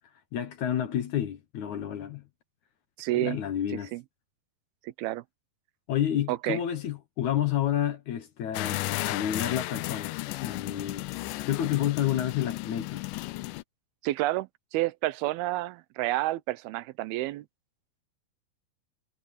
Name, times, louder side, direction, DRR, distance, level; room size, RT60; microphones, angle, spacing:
voice 1, 0.3-2.2 3.1-3.9 5.9-10.1 10.4-11.1 11.5-13.1, left 11 dB, 65° left, 2.2 m, -30 dB
voice 2, 3.0-3.4 3.9-4.0 4.8-5.2 6.3-6.6 14.0-17.5, right 17 dB, 85° right, 2.6 m, -29 dB
sound 1, 8.5-13.6, left 19 dB, 85° left, 1.9 m, -34 dB
omnidirectional pair, 4.4 m